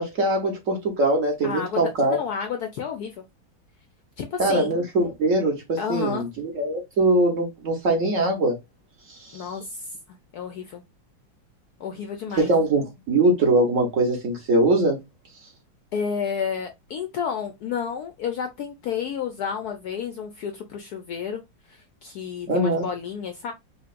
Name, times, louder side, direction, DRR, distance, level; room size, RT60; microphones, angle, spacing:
voice 1, 0.0-2.2 4.4-8.6 9.1-9.4 12.4-15.0 22.5-22.8, right 2 dB, 45° right, 1.3 m, -22 dB
voice 2, 1.4-3.2 4.2-4.7 5.8-6.3 9.3-10.8 11.8-12.5 15.9-21.4 21.7-23.5, left 7 dB, 70° left, 0.9 m, -31 dB
5.1 x 2.5 x 2.4 m
omnidirectional pair, 2.1 m